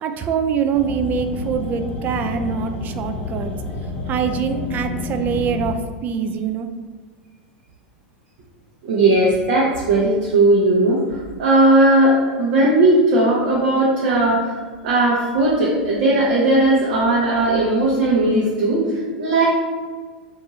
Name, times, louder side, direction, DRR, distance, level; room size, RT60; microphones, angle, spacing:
voice 1, 0.0-3.5 4.1-6.7, right 7 dB, 35° right, 7 dB, 0.3 m, -24 dB
sound 1, 0.7-5.7, left 4 dB, 30° left, 0.5 m, -29 dB
voice 2, 8.8-11.0 11.4-14.6 14.8-19.5, right 2 dB, 60° right, -5 dB, 0.8 m, -17 dB
2.7 x 2.5 x 3.9 m, 1.5 s
hypercardioid pair, 95°, 5 cm